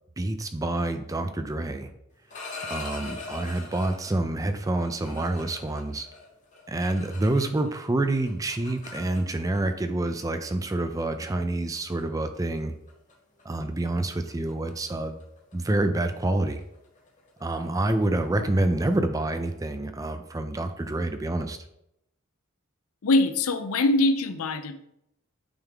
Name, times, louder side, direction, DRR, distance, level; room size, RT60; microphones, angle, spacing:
voice 1, 0.2-1.9 2.7-6.1 6.7-12.7 13.4-15.2 15.5-16.6 17.4-21.6, right 2 dB, 15° right, 8 dB, 0.4 m, -27 dB
sound 1, 2.1-4.2 4.7-7.8 8.1-9.6 10.5-10.6 11.0-11.3 11.7-12.0 12.3-12.6 12.9-13.1 13.4-18.8, left 3 dB, 35° left, 1.1 m, -43 dB
voice 2, 23.0-24.9, left 2 dB, 80° left, 10 dB, 0.6 m, -23 dB
8.8 x 3.5 x 3.6 m, 0.80 s
head